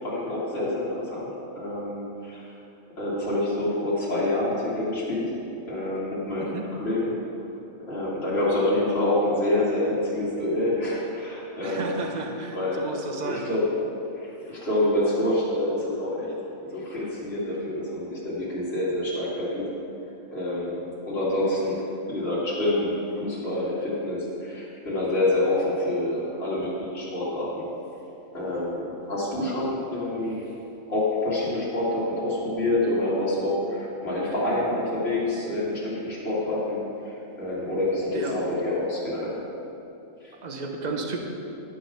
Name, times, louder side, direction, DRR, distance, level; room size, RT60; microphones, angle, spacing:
voice 1, 0.0-1.3 1.5-2.4 3.0-5.3 5.7-7.1 7.9-11.9 12.5-12.8 13.2-13.7 14.2-16.3 16.7-19.6 20.3-21.8 22.1-27.7 28.3-30.5 30.9-39.4 40.2-40.3, left 1 dB, 45° left, -9 dB, 2.5 m, -27 dB
voice 2, 11.6-13.5 38.1-38.4 40.4-41.2, right 3 dB, 35° right, 2 dB, 0.9 m, -33 dB
11.5 x 4.1 x 7.0 m, 2.8 s
omnidirectional pair, 1.5 m